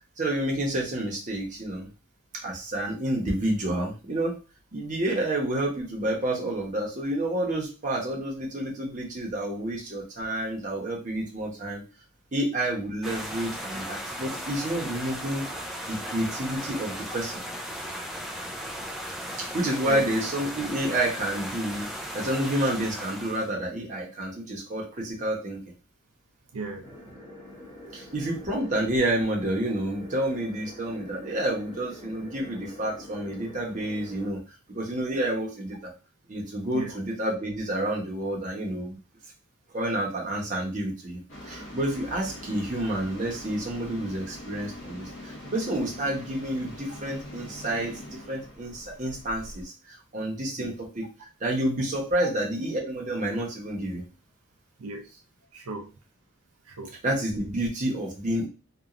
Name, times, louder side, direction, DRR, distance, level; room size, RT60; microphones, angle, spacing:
voice 1, 0.2-1.9 2.4-4.4 4.7-11.8 12.3-15.4 15.9-17.4 19.4-25.6 27.9-34.4 34.7-35.9 36.3-39.0 39.7-41.2 41.5-51.1 51.4-54.0 57.0-58.5, right 1 dB, 35° right, -2 dB, 0.8 m, -29 dB
sound 1, 13.0-23.5, equal, ahead, 0.3 m, -36 dB
voice 2, 26.5-26.9 27.8-27.9 36.7-37.0 50.6-50.7 54.8-55.2 55.5-55.9 56.7-56.9, right 2 dB, 80° right, 3 dB, 0.5 m, -36 dB
sound 2, 26.8-34.3, left 1 dB, 30° left, 0.7 m, -46 dB
sound 3, 41.3-49.6, left 1 dB, 60° left, 1.0 m, -43 dB
2.9 x 2.3 x 2.4 m, 0.31 s
head